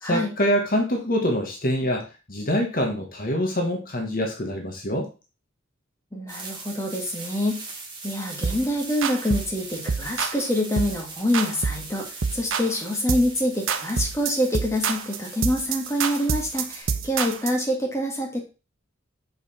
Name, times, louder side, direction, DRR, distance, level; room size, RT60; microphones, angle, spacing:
voice 1, 0.0-5.1, equal, 45° left, 2 dB, 1.5 m, -25 dB
voice 2, 6.1-7.6 8.0-12.1 12.3-18.4, left 1 dB, 15° left, 0 dB, 1.9 m, -26 dB
sound 1, 6.3-16.8, right 3 dB, 25° right, 1.9 m, -40 dB
sound 2, 8.4-8.7 9.0-9.5 9.9-10.4 10.8-11.0 11.3-11.9 12.2-12.7 13.1-13.4 13.7-17.6, right 5 dB, 85° right, 0.8 m, -27 dB
6.7 x 5.3 x 4.3 m, 0.31 s
head